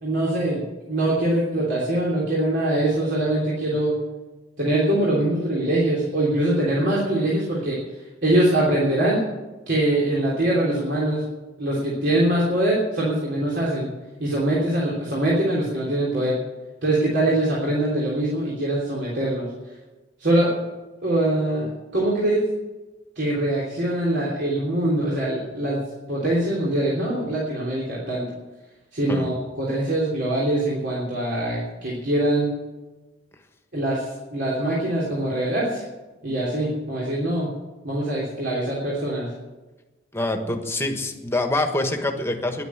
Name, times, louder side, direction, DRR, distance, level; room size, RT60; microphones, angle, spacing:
voice 1, 0.0-3.9 4.6-7.8 8.2-9.2 9.7-11.2 11.6-13.9 14.2-16.4 16.8-19.5 20.2-20.6 21.0-22.5 23.1-25.8 26.1-28.3 28.9-32.5 33.7-35.8 36.2-37.5 37.8-39.3, right 1 dB, 65° right, -5 dB, 3.4 m, -23 dB
voice 2, 40.1-42.7, left 2 dB, 15° left, 5 dB, 1.4 m, -25 dB
11.0 x 9.3 x 9.6 m, 1.2 s
head